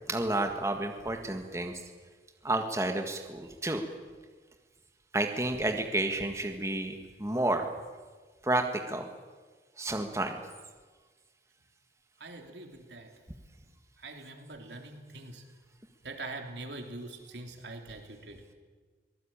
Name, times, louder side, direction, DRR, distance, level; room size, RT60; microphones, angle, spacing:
voice 1, 0.1-1.8 2.4-3.8 5.1-7.7 8.4-9.0 9.8-10.4, right 2 dB, 15° right, 4 dB, 1.7 m, -30 dB
voice 2, 12.2-13.1 14.0-15.4 16.0-18.4, right 2 dB, 85° right, 4 dB, 3.4 m, -43 dB
24.5 x 18.5 x 8.9 m, 1.4 s
head